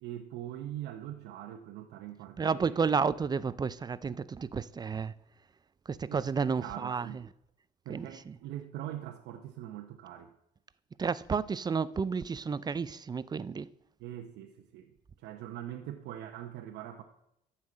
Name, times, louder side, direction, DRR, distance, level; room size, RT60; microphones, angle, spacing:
voice 1, 0.0-3.0 4.0-4.2 6.0-6.3 6.6-7.2 7.8-10.3 14.0-17.0, right 12 dB, 85° right, 0.9 m, -42 dB
voice 2, 2.4-5.1 5.9-7.1 7.9-8.3 11.0-13.7, right 5 dB, 25° right, 0.4 m, -31 dB
12.5 x 5.7 x 7.6 m
cardioid pair, 110°, 17 cm